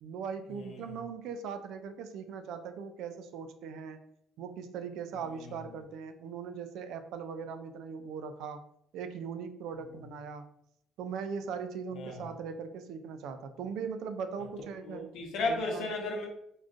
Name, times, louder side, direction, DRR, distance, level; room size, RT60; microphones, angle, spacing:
voice 1, 0.0-4.0 4.4-8.6 8.9-10.5 11.0-15.1 15.5-15.9, right 6 dB, 80° right, 0.3 m, -39 dB
voice 2, 0.6-0.9 12.0-12.1 14.9-16.3, left 2 dB, 80° left, 0.8 m, -34 dB
3.7 x 2.3 x 2.5 m
cardioid pair, 110°, 0 cm